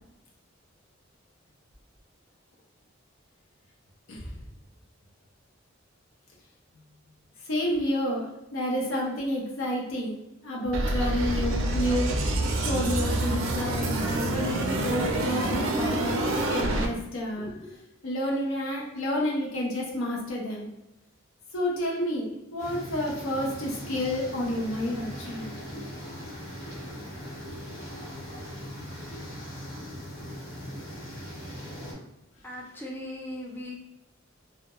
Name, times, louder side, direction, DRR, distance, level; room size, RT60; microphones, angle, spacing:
voice 1, 7.4-10.2 10.4-12.1 12.4-17.5 18.0-20.7 21.5-25.5, left 1 dB, 85° left, -2 dB, 0.6 m, -30 dB
sound 1, 10.7-16.9, right 2 dB, 75° right, 0.4 m, -27 dB
voice 2, 17.4-17.8 32.4-33.8, left 1 dB, 10° left, -2 dB, 0.3 m, -39 dB
sound 2, 22.6-31.9, equal, 50° left, 0.9 m, -40 dB
2.2 x 2.1 x 2.8 m, 0.89 s
head